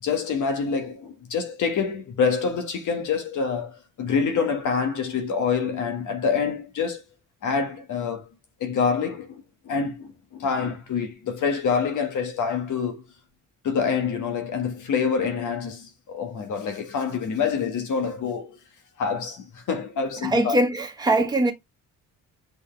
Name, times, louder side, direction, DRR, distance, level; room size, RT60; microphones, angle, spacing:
voice 1, 0.0-7.0 7.4-8.3 8.6-13.0 13.6-18.6 19.0-20.6, left 5 dB, 65° left, 1.9 m, -26 dB
voice 2, 20.2-21.5, right 1 dB, 10° right, 1.7 m, -22 dB
8.3 x 4.9 x 3.4 m
cardioid pair, 165°, 33 cm